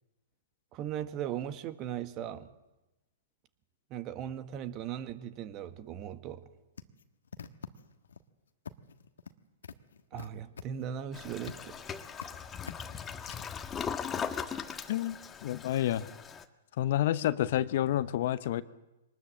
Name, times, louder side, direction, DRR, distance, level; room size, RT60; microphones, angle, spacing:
voice 1, 0.7-2.5 3.9-6.4 10.1-11.9, right 10 dB, 35° right, 10 dB, 1.5 m, -38 dB
sound 1, 6.8-8.2 8.6-9.3 9.6-11.7 12.0-12.3 12.7-13.5, left 7 dB, 75° left, 1.3 m, -46 dB
Toilet flush, 11.1-16.4, left 7 dB, 20° left, 1.4 m, -39 dB
voice 2, 14.9-16.1 16.8-18.6, left 12 dB, 55° left, 14 dB, 0.9 m, -29 dB
23.5 x 20.0 x 7.7 m, 1.0 s
hypercardioid pair, 120°, 0 cm